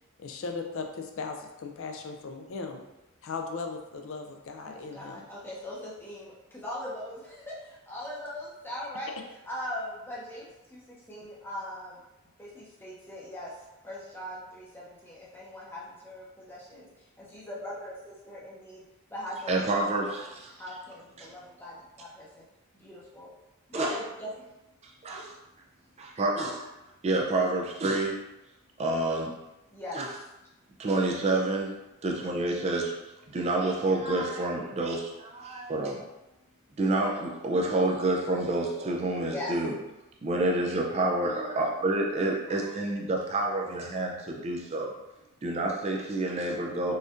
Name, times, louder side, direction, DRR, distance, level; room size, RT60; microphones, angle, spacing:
voice 1, 0.2-2.8 3.2-5.2, left 4 dB, 60° left, 4 dB, 0.4 m, -37 dB
voice 2, 4.6-9.2 9.4-12.0 12.4-18.8 19.1-22.4 22.7-23.3 23.7-24.4 29.7-30.0 38.6-39.0 39.3-39.5 43.6-43.7, left 1 dB, 10° left, -6 dB, 0.7 m, -40 dB
voice 3, 19.5-20.5 21.2-21.3 23.7-23.9 24.8-25.3 26.0-26.6 27.0-28.2 28.8-29.3 29.9-30.1 30.8-31.7 32.0-33.0 33.3-36.0 36.8-39.7 40.2-44.9 45.4-47.0, right 2 dB, 30° right, 0 dB, 0.3 m, -28 dB
4.2 x 2.5 x 2.4 m, 0.98 s
head